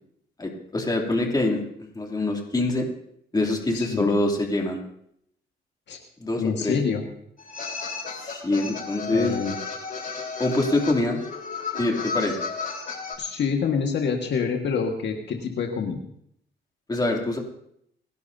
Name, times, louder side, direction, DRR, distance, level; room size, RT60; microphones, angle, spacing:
voice 1, 0.4-1.6 1.9-2.9 3.3-4.8 6.2-6.7 8.2-9.3 10.4-11.2 11.8-12.4 16.9-17.4, left 2 dB, 20° left, 0 dB, 2.9 m, -24 dB
voice 2, 3.7-4.1 5.9-6.0 6.4-7.0 9.1-9.6 13.2-16.0, left 6 dB, 65° left, 2 dB, 1.7 m, -26 dB
sound 1, 7.4-13.1, left 5 dB, 45° left, 4.0 m, -33 dB
29.5 x 11.0 x 2.8 m, 0.72 s
cardioid pair, 90°, 20 cm